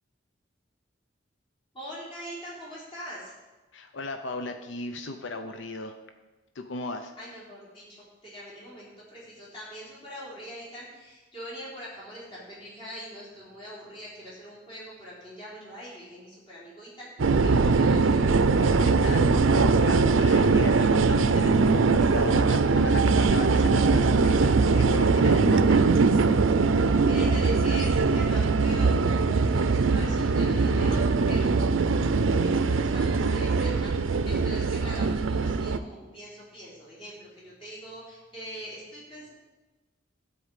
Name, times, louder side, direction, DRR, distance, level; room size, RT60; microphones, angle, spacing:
voice 1, 1.7-3.3 7.2-7.8 8.2-18.3 27.0-31.6 31.9-39.3, equal, 25° left, -8 dB, 3.7 m, -43 dB
voice 2, 3.7-5.9 6.6-7.1 18.5-25.9, left 2 dB, 65° left, 7 dB, 0.7 m, -36 dB
sound 1, 17.2-35.8, right 4 dB, 75° right, 0.5 m, -22 dB
12.5 x 4.7 x 8.2 m, 1.2 s
head